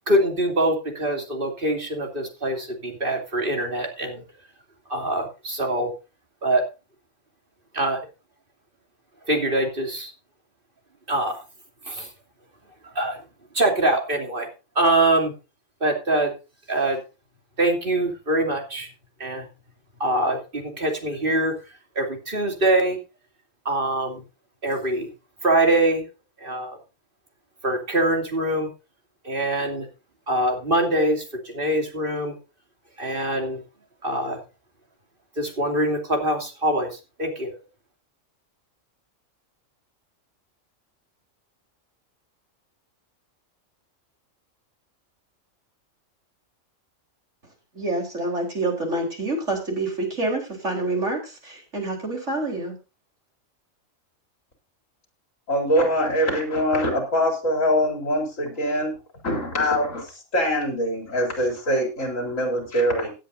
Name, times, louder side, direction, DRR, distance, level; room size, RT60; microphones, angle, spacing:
voice 1, 0.1-4.2 4.9-5.9 6.4-6.6 7.7-8.0 9.3-10.1 11.1-11.4 11.9-12.1 12.9-13.2 13.5-14.5 14.7-15.3 15.8-16.3 16.7-17.0 17.6-18.9 19.2-19.5 20.0-21.5 21.9-23.0 23.6-24.2 24.6-25.1 25.4-26.0 26.4-26.8 27.6-28.7 29.2-29.9 30.3-32.4 33.0-33.6 34.0-34.4 35.4-36.9 37.2-37.5, right 1 dB, 40° right, 2 dB, 3.0 m, -23 dB
voice 2, 47.7-52.8, right 2 dB, 60° right, 1 dB, 4.5 m, -27 dB
voice 3, 55.5-58.9 59.2-63.1, equal, 70° left, 2 dB, 4.3 m, -23 dB
17.5 x 10.0 x 2.7 m, 0.29 s
omnidirectional pair, 1.4 m